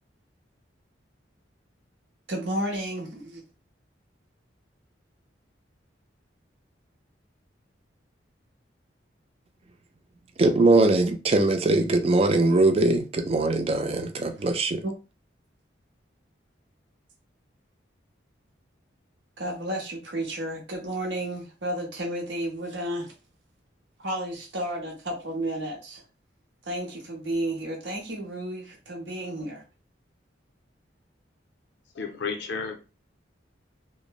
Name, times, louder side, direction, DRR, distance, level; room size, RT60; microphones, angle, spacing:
voice 1, 2.3-3.4 14.8-14.9 19.4-23.1 24.0-26.0 26.7-29.6, right 1 dB, 70° right, 0.8 m, -32 dB
voice 2, 10.4-14.8, right 2 dB, 30° right, 0.3 m, -21 dB
voice 3, 32.0-32.8, left 5 dB, 70° left, 0.4 m, -32 dB
3.1 x 2.0 x 2.3 m
head